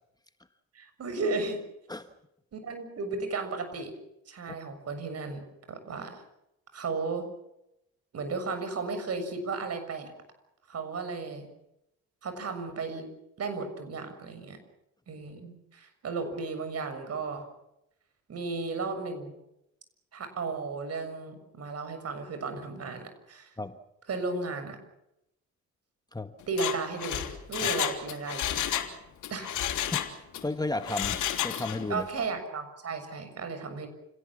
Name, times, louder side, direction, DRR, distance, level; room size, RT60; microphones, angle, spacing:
voice 1, 0.7-1.6 2.5-3.9 4.3-5.4 5.7-6.2 6.7-7.3 8.1-10.1 10.7-11.5 12.2-13.1 13.4-14.6 15.1-17.4 18.3-19.3 20.1-23.5 24.1-24.8 26.5-28.7 29.3-29.5 31.9-33.9, right 4 dB, 55° right, 8 dB, 6.8 m, -34 dB
Mechanisms, 26.4-28.9 29.2-30.4 30.8-31.9 32.2-32.3, left 11 dB, 80° left, 3.2 m, -31 dB
voice 2, 29.9-32.1, left 2 dB, 15° left, 9 dB, 1.4 m, -34 dB
29.0 x 18.0 x 7.4 m, 0.83 s
cardioid pair, 90°, 30 cm